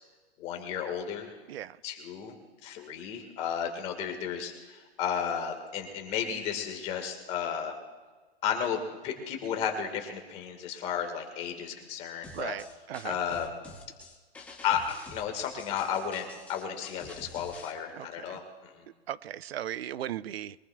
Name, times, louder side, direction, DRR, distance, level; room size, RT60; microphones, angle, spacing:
voice 1, 0.4-1.3 1.8-2.4 2.6-7.7 8.4-12.5 13.0-13.5 14.6-18.4 18.8-18.9, left 8 dB, 20° left, 4 dB, 1.7 m, -33 dB
sound 1, 12.2-17.7, left 3 dB, 5° left, 0.8 m, -48 dB
voice 2, 12.3-13.2 17.9-18.4 19.1-20.6, right 11 dB, 70° right, 18 dB, 0.6 m, -37 dB
23.0 x 19.5 x 2.3 m, 1.4 s
hypercardioid pair, 170°, 31 cm